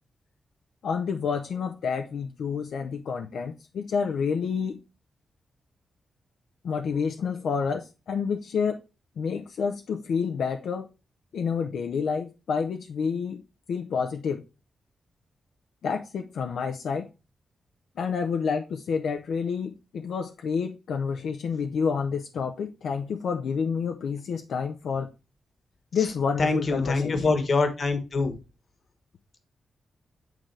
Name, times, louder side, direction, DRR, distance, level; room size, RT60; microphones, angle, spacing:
voice 1, 0.8-4.8 6.6-8.8 9.2-10.9 11.3-13.4 13.7-14.4 15.8-17.1 18.0-25.1 25.9-27.4, left 6 dB, 80° left, 0.5 m, -29 dB
voice 2, 26.4-28.3, left 3 dB, 50° left, 1.2 m, -25 dB
9.0 x 3.7 x 3.2 m
cardioid pair, 105°, 0 cm